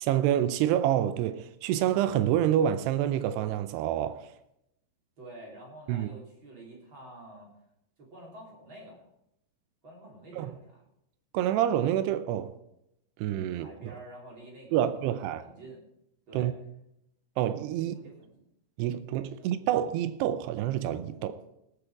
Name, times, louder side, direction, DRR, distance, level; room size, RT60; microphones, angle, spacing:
voice 1, 0.0-4.3 5.9-6.1 10.4-10.5 11.3-12.5 13.2-13.7 14.7-15.4 16.3-16.5 17.4-18.0 18.8-21.4, right 11 dB, 85° right, 2.4 m, -27 dB
voice 2, 5.2-7.5 8.0-9.1 9.8-10.8 13.5-15.8 16.3-16.5 17.8-18.3 19.4-19.5 21.1-21.4, right 1 dB, 30° right, 3.2 m, -48 dB
19.0 x 8.9 x 4.7 m
omnidirectional pair, 5.5 m